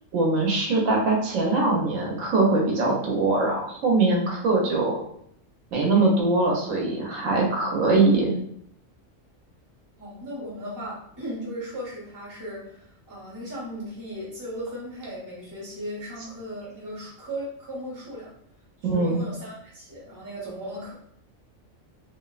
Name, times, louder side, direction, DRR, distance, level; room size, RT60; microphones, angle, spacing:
voice 1, 0.1-5.0 5.7-8.3 18.8-19.2, right 3 dB, 90° right, -1 dB, 1.1 m, -22 dB
voice 2, 10.0-18.3 18.9-20.9, equal, 20° right, -6 dB, 0.8 m, -36 dB
2.7 x 2.1 x 2.3 m, 0.68 s
omnidirectional pair, 1.3 m